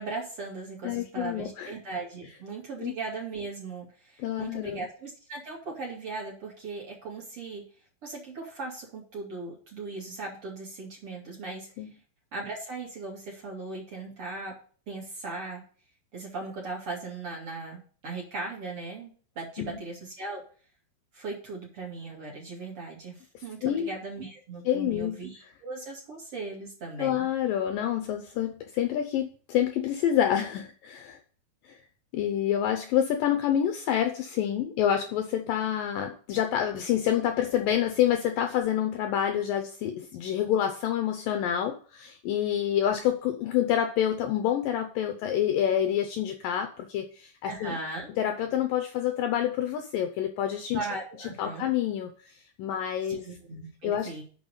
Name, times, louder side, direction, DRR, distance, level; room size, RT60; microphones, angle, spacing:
voice 1, 0.0-7.6 8.0-11.7 12.3-14.5 14.9-15.6 16.1-20.4 21.1-27.2 47.4-48.1 50.7-51.7 53.1-54.2, right 3 dB, 40° right, -3 dB, 2.9 m, -38 dB
voice 2, 0.8-1.7 2.8-2.9 4.2-4.8 11.8-11.9 19.6-19.8 23.6-23.9 24.7-25.2 27.0-31.2 31.6-31.8 32.1-47.8 48.2-50.9 51.4-52.3 52.6-53.3 53.8-54.1, left 10 dB, 80° left, 6 dB, 2.1 m, -27 dB
7.1 x 6.2 x 6.9 m, 0.43 s
omnidirectional pair, 4.7 m